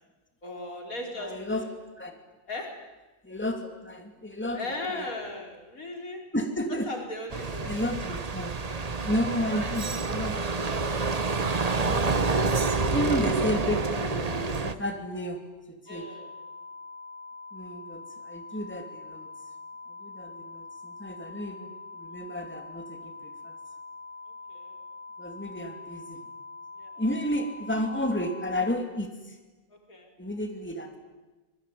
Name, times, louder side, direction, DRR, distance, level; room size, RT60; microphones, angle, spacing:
voice 1, 0.4-1.7 2.5-2.7 4.5-6.2 6.9-7.7 9.5-10.4 15.9-16.3 24.5-24.7 26.8-26.9 29.7-30.1, left 2 dB, 90° left, 1 dB, 4.8 m, -38 dB
voice 2, 1.1-1.6 2.0-2.1 3.2-5.1 6.3-6.9 7.4-8.5 9.0-10.4 11.7-12.6 12.9-15.4 15.7-16.0 17.5-19.3 20.0-23.6 25.2-26.2 27.0-29.4 30.2-31.0, equal, 10° left, 4 dB, 2.8 m, -32 dB
sound 1, 7.3-14.7, right 3 dB, 30° right, 1.1 m, -28 dB
sound 2, 15.9-28.7, left 3 dB, 10° right, 3.5 m, -44 dB
25.0 x 20.5 x 9.5 m, 1.2 s
omnidirectional pair, 1.4 m